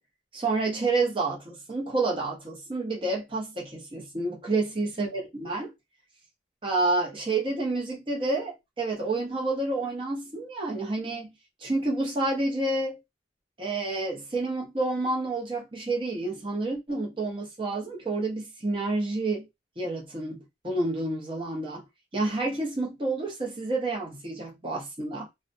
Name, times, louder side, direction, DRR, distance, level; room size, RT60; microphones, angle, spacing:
voice 1, 0.3-5.7 6.6-11.3 11.6-13.0 13.6-19.5 19.8-21.8 22.1-25.3, right 2 dB, 25° right, 0.8 m, -29 dB
2.4 x 2.2 x 2.6 m
head